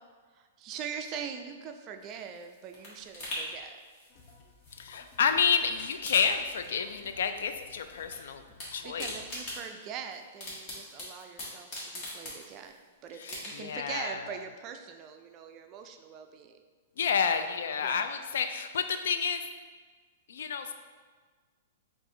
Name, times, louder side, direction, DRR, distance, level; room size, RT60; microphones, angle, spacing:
voice 1, 0.6-3.8 8.2-8.3 8.8-12.7 13.0-16.6 17.3-17.4 17.8-18.0, right 7 dB, 35° right, 6 dB, 0.4 m, -42 dB
sound 1, 2.0-5.3 5.6-7.1 7.4-8.2 8.4-12.8 13.2-13.8 14.2-14.3, left 1 dB, 30° left, 1.5 m, -42 dB
sound 2, 4.1-9.6, left 4 dB, 50° left, 0.6 m, -57 dB
voice 2, 4.7-8.4 8.7-9.1 13.1-14.4 17.0-19.4 20.3-20.7, left 6 dB, 75° left, 8 dB, 0.3 m, -30 dB
4.7 x 2.5 x 3.7 m, 1.5 s
hypercardioid pair, 140°, 0 cm